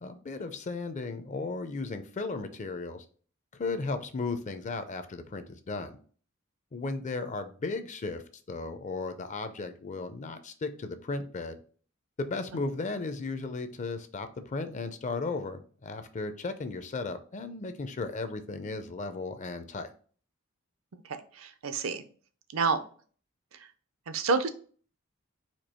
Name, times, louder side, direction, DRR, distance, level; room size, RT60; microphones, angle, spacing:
voice 1, 0.0-3.0 3.6-6.0 6.7-8.2 8.5-11.6 12.2-19.9, left 3 dB, 35° left, 9 dB, 0.5 m, -35 dB
voice 2, 21.0-22.0 22.5-22.8 24.1-24.5, right 4 dB, 70° right, 10 dB, 0.5 m, -28 dB
4.4 x 2.7 x 4.3 m, 0.43 s
head